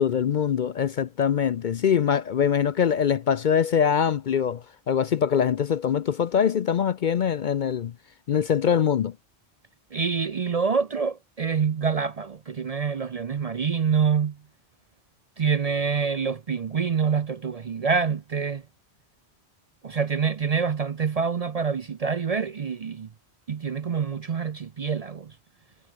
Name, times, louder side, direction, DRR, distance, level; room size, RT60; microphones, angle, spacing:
voice 1, 0.0-7.9 8.3-9.1, left 8 dB, 55° left, 0.6 m, -23 dB
voice 2, 9.9-14.4 15.4-18.6 19.8-23.1 23.5-25.4, right 6 dB, 45° right, 0.5 m, -26 dB
omnidirectional pair, 1.1 m